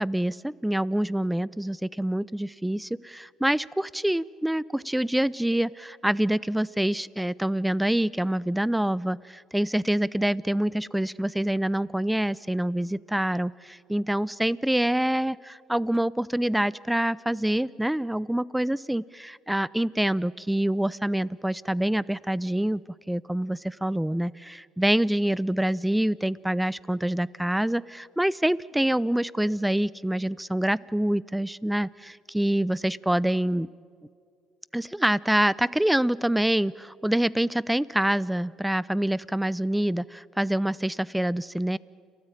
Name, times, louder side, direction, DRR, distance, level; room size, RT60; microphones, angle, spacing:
voice 1, 0.0-22.8 23.1-33.7 34.7-41.8, right 1 dB, 5° right, 22 dB, 0.5 m, -26 dB
29.5 x 14.0 x 9.1 m, 2.2 s
supercardioid pair, 75°, 0 cm